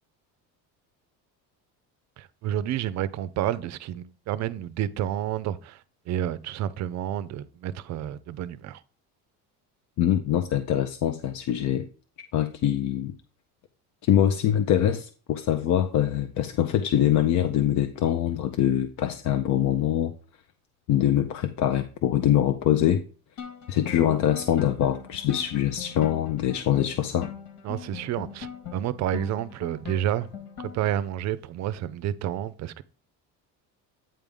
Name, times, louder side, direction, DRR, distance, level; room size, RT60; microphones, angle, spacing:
voice 1, 2.2-8.8 27.6-30.3 30.6-32.8, right 11 dB, 45° right, 0.5 m, -30 dB
voice 2, 10.0-11.9 12.3-13.1 14.0-20.1 20.9-23.0 23.7-27.3, left 11 dB, 50° left, 0.6 m, -24 dB
sound 1, 23.4-31.0, left 8 dB, 80° left, 1.7 m, -41 dB
9.0 x 3.5 x 5.2 m
cardioid pair, 145°, 37 cm